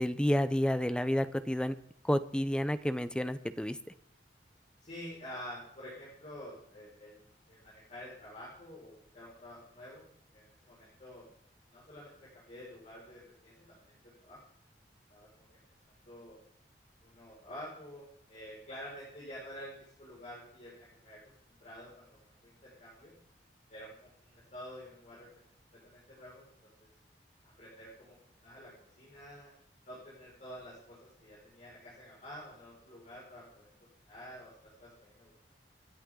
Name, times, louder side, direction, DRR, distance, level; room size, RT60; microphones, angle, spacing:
voice 1, 0.0-1.7 2.0-3.8, equal, 5° left, 12 dB, 0.7 m, -30 dB
voice 2, 4.8-7.2 7.5-10.0 10.3-11.2 11.7-14.4 15.1-15.5 15.8-16.4 17.0-21.2 21.5-22.1 22.4-23.1 23.7-25.3 25.8-26.4 27.6-28.2 28.4-28.7 29.0-29.5 29.8-33.7 34.1-35.5, equal, 40° left, -7 dB, 5.5 m, -49 dB
27.0 x 10.5 x 3.8 m, 0.67 s
head